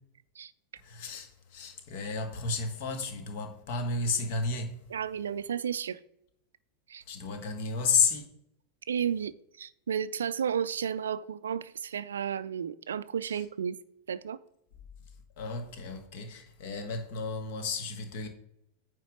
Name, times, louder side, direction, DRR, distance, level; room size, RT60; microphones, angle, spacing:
voice 1, 0.8-4.8 7.1-8.3 13.3-13.4 15.4-18.3, left 4 dB, 50° left, 1.6 m, -32 dB
voice 2, 4.9-6.0 6.9-7.0 8.9-9.3 9.6-13.8 14.1-14.4, right 8 dB, 65° right, 0.4 m, -32 dB
9.1 x 3.7 x 6.3 m
figure-of-eight pair, 90°, 0 cm